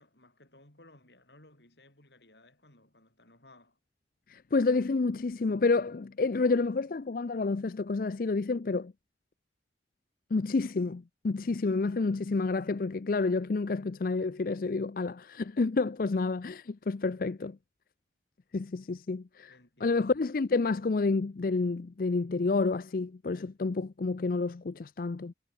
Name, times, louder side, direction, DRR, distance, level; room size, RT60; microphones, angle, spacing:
voice 1, 0.0-3.8 19.5-20.2, left 2 dB, 75° left, 7.2 m, -59 dB
voice 2, 4.3-8.9 10.3-17.6 18.5-19.5 19.8-25.3, left 3 dB, 50° left, 0.5 m, -29 dB
head